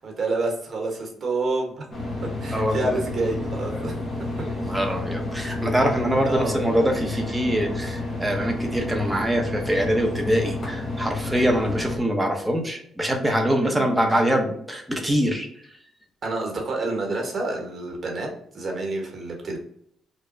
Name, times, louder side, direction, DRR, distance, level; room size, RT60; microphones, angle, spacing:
voice 1, 0.0-1.9 2.2-4.5 6.2-6.8 13.6-14.2 16.2-19.6, right 2 dB, 40° right, 1 dB, 1.0 m, -29 dB
sound 1, 1.9-12.0, left 2 dB, 35° left, 0.9 m, -30 dB
voice 2, 2.5-2.8 4.7-15.5, equal, 5° right, 2 dB, 0.7 m, -24 dB
3.0 x 2.1 x 3.7 m, 0.68 s
cardioid pair, 90°, 0 cm